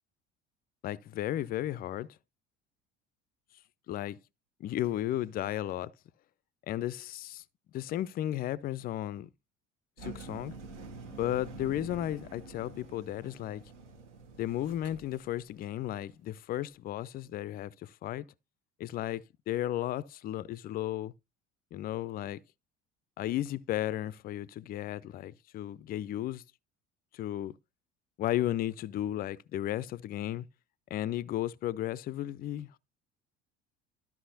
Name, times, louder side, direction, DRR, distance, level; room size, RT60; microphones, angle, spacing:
voice 1, 0.8-2.1 3.9-4.2 4.6-5.9 6.7-7.4 7.7-9.3 10.0-10.5 11.2-13.6 14.4-18.3 18.8-21.1 21.7-22.4 23.2-26.4 27.1-27.5 28.2-30.5 30.9-32.8, left 13 dB, 25° left, 0.3 m, -34 dB
Engine, 10.0-15.8, right 4 dB, 70° right, 1.5 m, -47 dB
12.5 x 5.8 x 2.7 m
figure-of-eight pair, 60°, 37 cm